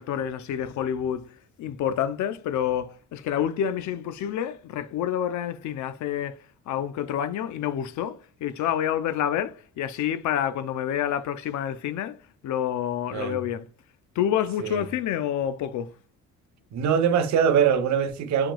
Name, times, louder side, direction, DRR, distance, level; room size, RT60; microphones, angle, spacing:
voice 1, 0.0-6.4 6.7-12.2 12.4-13.7 14.2-15.9, left 10 dB, 70° left, 0.5 m, -28 dB
voice 2, 16.7-18.5, right 7 dB, 65° right, 0.7 m, -22 dB
7.5 x 2.9 x 2.2 m
cardioid pair, 90°, 30 cm